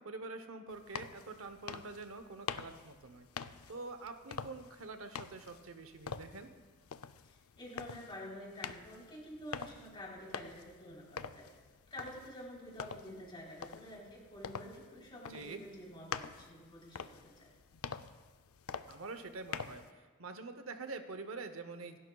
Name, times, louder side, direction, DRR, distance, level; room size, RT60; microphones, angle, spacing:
voice 1, 0.0-3.3 3.7-6.5 15.3-15.6 18.9-22.0, right 3 dB, 75° right, 8 dB, 0.8 m, -46 dB
sound 1, 0.7-19.9, left 6 dB, 85° left, 0.5 m, -47 dB
voice 2, 7.6-11.5 11.9-17.5, equal, 25° left, -3 dB, 3.6 m, -49 dB
27.0 x 11.0 x 2.3 m, 1.5 s
head